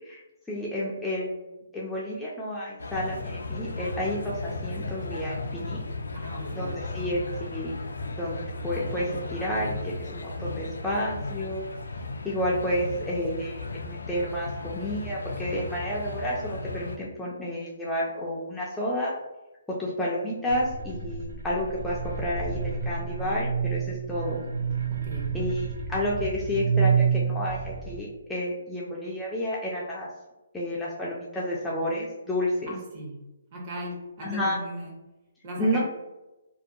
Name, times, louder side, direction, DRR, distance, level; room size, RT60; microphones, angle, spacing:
voice 1, 0.5-5.8 6.5-7.7 8.1-11.7 12.2-19.1 19.7-24.4 25.3-30.1 30.5-32.7 34.2-34.6 35.6-35.8, equal, 5° left, -6 dB, 0.3 m, -30 dB
sound 1, 2.8-17.0, left 2 dB, 90° left, 0.3 m, -35 dB
voice 2, 6.1-6.7 24.9-25.4 32.7-33.2 33.5-34.9 35.4-35.8, equal, 35° right, -2 dB, 0.7 m, -38 dB
sound 2, 20.5-28.0, right 6 dB, 75° right, 0.5 m, -29 dB
2.3 x 2.2 x 2.6 m, 1.0 s
hypercardioid pair, 155°, 0 cm